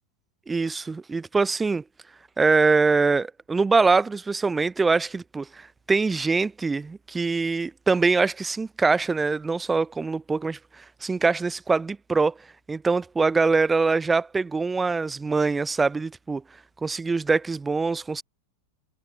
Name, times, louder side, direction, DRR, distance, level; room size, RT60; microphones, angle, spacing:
voice 1, 0.5-1.8 2.4-10.6 11.0-12.3 12.7-16.4 16.8-18.2, right 4 dB, 10° right, 0.3 m, -23 dB
figure-of-eight pair, 90°, 0 cm